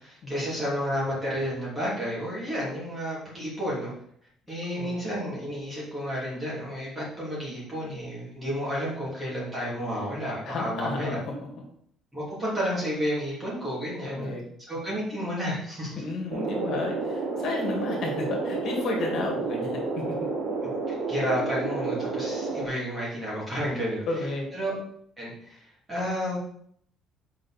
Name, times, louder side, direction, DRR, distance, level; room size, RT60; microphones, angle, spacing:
voice 1, 0.0-3.9 4.5-11.2 12.1-14.3 14.7-16.0 20.6-24.0 24.5-24.8 25.2-25.6 25.9-26.4, equal, 10° right, -7 dB, 3.0 m, -31 dB
voice 2, 10.5-11.3 14.0-14.4 16.0-20.2 24.1-24.5, left 3 dB, 55° left, 0 dB, 2.1 m, -32 dB
sound 1, 16.3-22.7, right 3 dB, 55° right, 3.2 m, -30 dB
7.8 x 5.4 x 4.3 m, 0.66 s
cardioid pair, 170°, 0 cm